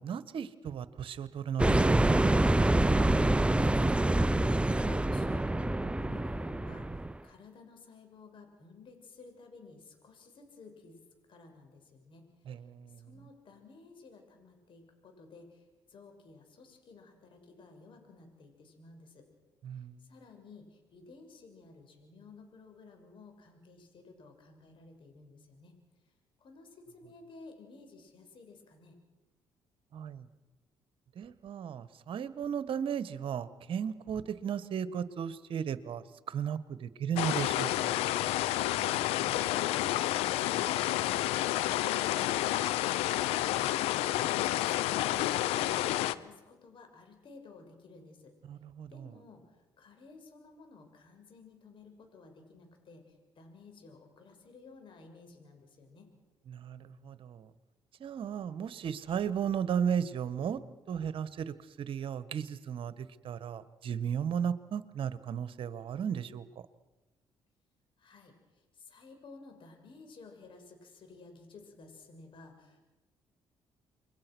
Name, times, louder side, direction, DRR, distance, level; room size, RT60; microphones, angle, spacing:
voice 1, 0.0-2.3 12.4-13.1 19.6-20.0 29.9-30.3 31.1-37.9 48.4-49.2 56.5-57.5 58.0-66.4, right 8 dB, 60° right, 14 dB, 1.4 m, -35 dB
sound 1, 1.6-7.2, right 1 dB, 10° right, 0.7 m, -26 dB
voice 2, 4.6-11.0 11.3-12.2 13.0-19.3 19.7-25.7 26.4-28.9 39.2-39.5 40.0-41.6 41.9-48.3 48.9-56.1 68.0-72.9, left 3 dB, 55° left, 5 dB, 6.3 m, -54 dB
sound 2, 37.2-46.1, left 15 dB, 85° left, 0.8 m, -30 dB
28.5 x 22.5 x 6.3 m, 1.1 s
supercardioid pair, 65°, 10 cm